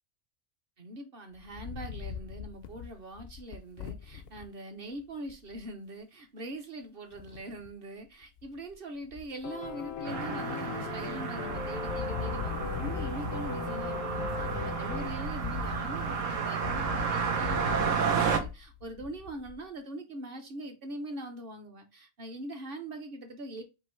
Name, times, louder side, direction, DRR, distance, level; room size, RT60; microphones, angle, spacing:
voice 1, 0.8-23.6, right 1 dB, 45° right, 1.0 m, -42 dB
Wind, 1.3-4.5 5.0-5.1 5.3-5.7 7.1-7.7 8.2-8.7 9.0-10.2 10.7-11.1 11.4-19.7, left 7 dB, 65° left, 0.6 m, -41 dB
Piano, 9.4-15.1, left 7 dB, 85° left, 1.2 m, -39 dB
sound 1, 10.1-18.4, right 6 dB, 65° right, 1.2 m, -32 dB
5.3 x 2.7 x 3.1 m
omnidirectional pair, 1.4 m